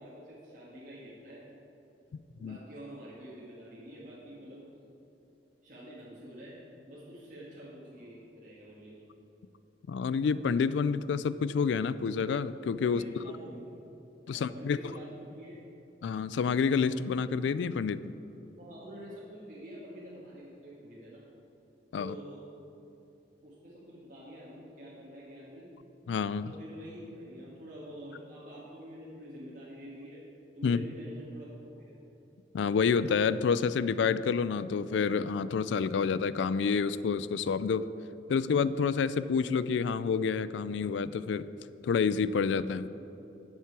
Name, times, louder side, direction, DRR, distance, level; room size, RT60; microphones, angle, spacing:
voice 1, 0.0-1.4 2.4-4.7 5.6-6.6 6.9-9.0 12.8-13.6 14.2-15.6 18.6-21.2 22.0-22.4 23.4-25.7 26.4-30.2 30.5-31.9, equal, 45° right, -8 dB, 1.7 m, -47 dB
voice 2, 9.9-13.0 14.3-14.8 16.0-18.2 21.9-22.2 26.1-26.5 30.6-30.8 32.5-37.8 38.3-41.5 41.8-42.9, left 5 dB, 75° left, 15 dB, 0.3 m, -28 dB
10.5 x 7.4 x 4.7 m, 2.9 s
head